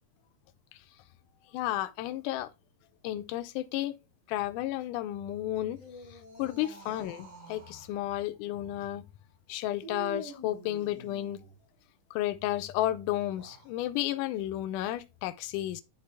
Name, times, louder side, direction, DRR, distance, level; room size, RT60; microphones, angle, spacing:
voice 1, 1.5-2.5 3.0-3.9 4.3-5.8 6.1-9.0 9.5-11.4 12.1-15.8, left 14 dB, 90° left, 2.2 m, -32 dB
sound 1, 5.6-7.9 9.8-11.6 13.2-13.7, right 1 dB, 75° right, 5.5 m, -47 dB
11.0 x 3.7 x 3.3 m
omnidirectional pair, 3.6 m